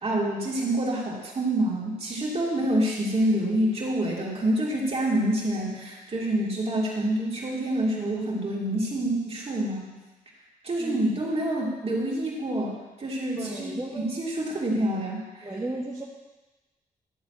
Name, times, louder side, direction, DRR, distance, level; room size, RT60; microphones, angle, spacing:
voice 1, 0.0-9.9 10.6-15.5, right 1 dB, 45° right, -4 dB, 3.2 m, -27 dB
voice 2, 13.4-14.1 15.4-16.0, right 2 dB, 20° right, -5 dB, 1.4 m, -34 dB
12.0 x 4.2 x 8.0 m, 1.1 s
cardioid pair, 80°, 15 cm